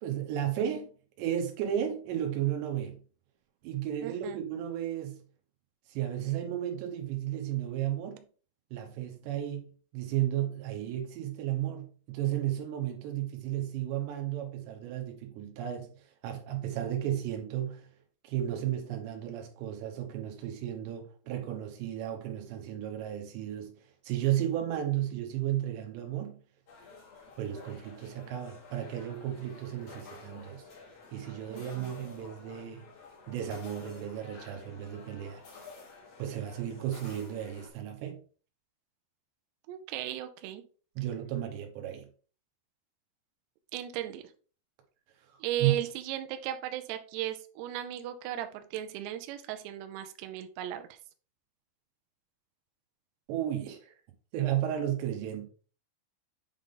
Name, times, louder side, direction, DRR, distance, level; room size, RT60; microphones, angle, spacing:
voice 1, 0.0-0.9 1.2-3.0 3.6-5.2 5.9-8.2 8.7-15.9 16.2-17.9 18.2-23.7 24.0-26.4 27.4-30.6 31.1-32.8 33.3-35.4 36.2-38.2 41.0-42.1 45.6-45.7 53.3-53.9 54.3-55.5, right 11 dB, 70° right, 3.2 m, -33 dB
voice 2, 4.0-4.4 31.5-31.9 39.7-40.6 43.7-44.2 45.4-50.9, right 12 dB, 90° right, 2.3 m, -36 dB
sound 1, 26.7-37.7, left 4 dB, 55° left, 1.9 m, -51 dB
8.6 x 3.7 x 3.8 m
omnidirectional pair, 5.6 m